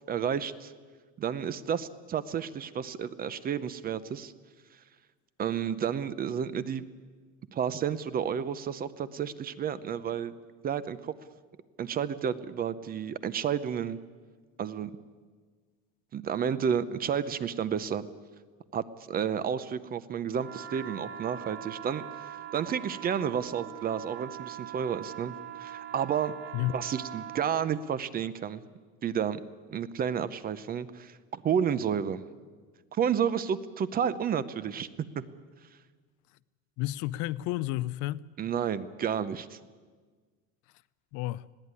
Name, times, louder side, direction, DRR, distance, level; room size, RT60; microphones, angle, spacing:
voice 1, 0.1-0.7 1.2-4.3 5.4-6.8 7.5-10.3 10.6-11.1 11.8-14.0 14.6-14.9 16.1-18.1 18.7-25.3 25.6-26.3 26.7-28.6 29.0-29.4 29.7-32.2 32.9-35.2 38.4-39.6, right 8 dB, 25° right, 0.7 m, -31 dB
sound 1, 20.3-27.6, right 10 dB, 80° right, 2.2 m, -42 dB
voice 2, 36.8-38.2 41.1-41.5, left 16 dB, 60° left, 0.6 m, -31 dB
20.5 x 16.0 x 9.7 m
cardioid pair, 155°, 34 cm